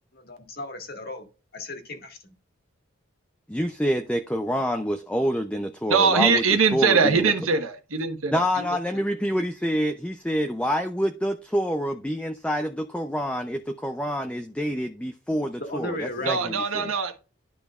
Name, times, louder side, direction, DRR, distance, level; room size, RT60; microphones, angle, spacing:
voice 1, 0.1-1.3 1.5-2.4 15.6-16.6, left 1 dB, 45° left, 1.8 m, -35 dB
voice 2, 3.5-6.4 6.7-7.3 8.3-16.9, equal, 5° left, 0.5 m, -27 dB
voice 3, 5.9-8.6 16.3-17.2, right 5 dB, 85° right, 1.3 m, -22 dB
11.5 x 5.1 x 2.4 m
head